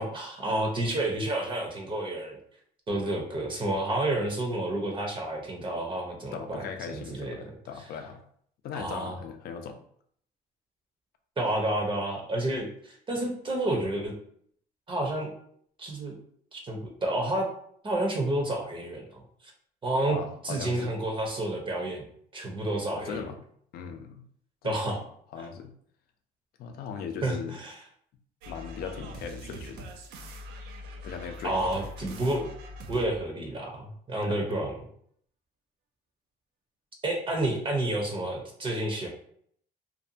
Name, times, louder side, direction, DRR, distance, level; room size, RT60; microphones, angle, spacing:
voice 1, 0.0-2.4 2.9-7.8 8.7-9.2 11.4-14.1 14.9-15.3 15.8-16.1 16.5-17.5 17.8-19.0 19.8-20.2 20.4-23.3 24.6-25.0 27.2-27.7 31.4-32.5 32.9-34.7 37.0-39.1, right 1 dB, 30° right, 0 dB, 0.6 m, -30 dB
voice 2, 6.3-8.2 8.6-9.8 20.1-20.9 23.0-23.4 23.7-24.2 24.6-25.1 25.3-25.7 26.6-27.6 28.5-29.9 31.0-31.6 34.2-34.4, left 6 dB, 65° left, 6 dB, 0.5 m, -38 dB
sound 1, 28.4-33.3, equal, 80° right, 0.5 m, -43 dB
2.6 x 2.2 x 2.6 m, 0.65 s
cardioid pair, 110°, 17 cm